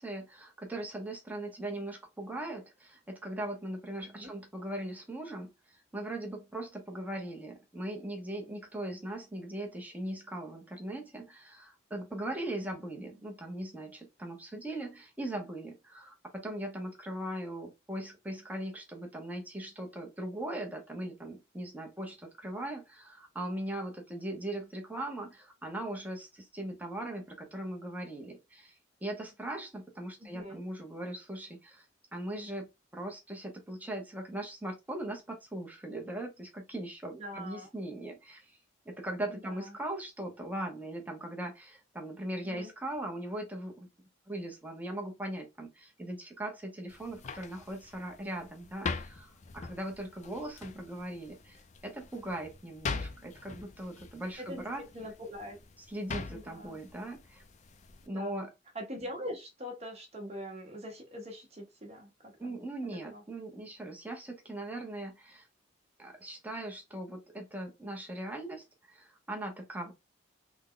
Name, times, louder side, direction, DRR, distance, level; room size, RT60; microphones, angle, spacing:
voice 1, 0.0-31.8 32.1-38.6 38.9-43.9 44.3-54.8 55.9-57.4 58.0-58.5 62.4-65.5 66.0-69.9, right 1 dB, 10° right, 0.8 m, -39 dB
voice 2, 30.2-30.6 37.2-37.7 39.3-39.7 42.4-42.7 54.4-54.6 54.9-55.6 56.3-56.8 58.1-58.4 58.7-62.5 62.9-63.2, equal, 35° right, 1.1 m, -43 dB
sound 1, 46.9-58.1, left 4 dB, 35° left, 0.4 m, -43 dB
3.5 x 2.2 x 3.7 m
head